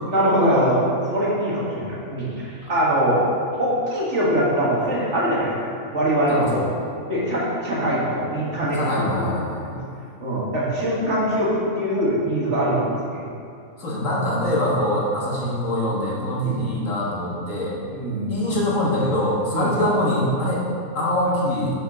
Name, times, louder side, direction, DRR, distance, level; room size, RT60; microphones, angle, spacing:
voice 1, 0.0-0.8 1.1-3.2 3.6-5.5 5.9-6.7 7.1-9.2 10.2-12.9 16.4-16.6 17.9-18.5 19.5-19.8, equal, 55° right, -6 dB, 1.9 m, -22 dB
voice 2, 6.3-6.6 8.7-9.8 13.8-17.8 18.3-20.6 20.9-21.7, left 1 dB, 60° left, -5 dB, 1.8 m, -23 dB
6.9 x 5.8 x 5.0 m, 2.4 s
omnidirectional pair, 1.5 m